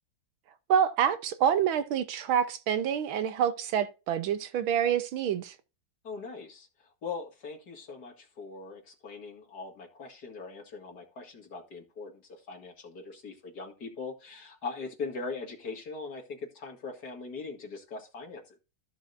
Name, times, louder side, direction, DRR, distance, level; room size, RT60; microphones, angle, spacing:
voice 1, 0.7-5.5, right 8 dB, 80° right, 1.7 m, -27 dB
voice 2, 6.0-6.7 7.0-18.6, left 4 dB, 50° left, 2.5 m, -41 dB
14.5 x 6.1 x 2.6 m
omnidirectional pair, 2.2 m